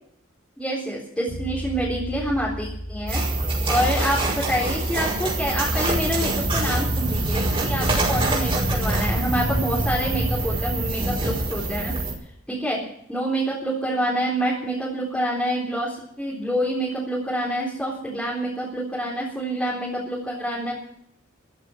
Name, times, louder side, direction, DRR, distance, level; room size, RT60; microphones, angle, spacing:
voice 1, 0.6-3.2 3.7-12.0 12.5-12.8 13.1-20.7, equal, 5° left, -6 dB, 3.8 m, -27 dB
Bass guitar, 1.3-11.1, equal, 75° left, 5.8 m, -39 dB
sound 1, 3.1-12.1, right 2 dB, 25° right, 5.6 m, -24 dB
15.0 x 13.5 x 6.4 m, 0.71 s
head